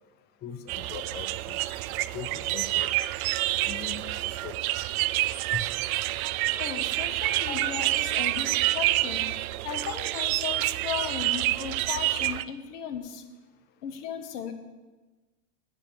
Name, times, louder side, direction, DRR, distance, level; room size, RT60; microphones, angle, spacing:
voice 1, 0.4-1.6 2.1-2.9 3.7-4.0 4.4-4.5 5.5-5.6, left 7 dB, 20° left, 7 dB, 0.6 m, -39 dB
sound 1, 0.7-12.4, right 16 dB, 70° right, 0.5 m, -28 dB
voice 2, 6.6-13.2 13.8-14.5, left 8 dB, 85° left, 6 dB, 1.6 m, -36 dB
8.3 x 6.8 x 8.4 m, 1.2 s
supercardioid pair, 145°, 45 cm